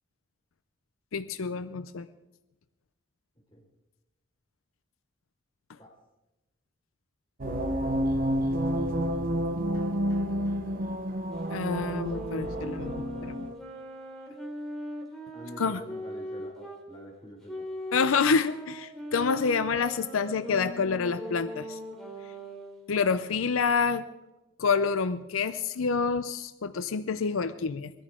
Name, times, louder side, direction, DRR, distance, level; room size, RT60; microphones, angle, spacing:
voice 1, 1.1-2.1 11.5-12.9 13.2-13.3 15.6-15.8 17.9-21.8 22.9-24.0 24.6-27.9, left 5 dB, 85° left, 11 dB, 0.6 m, -27 dB
sound 1, 7.4-13.5, equal, 45° right, 1.0 m, -29 dB
sound 2, 11.4-16.8 17.5-22.8, equal, ahead, 2.8 m, -40 dB
voice 2, 15.3-17.6, equal, 25° left, -3 dB, 4.5 m, -46 dB
22.5 x 13.5 x 3.7 m, 1.0 s
head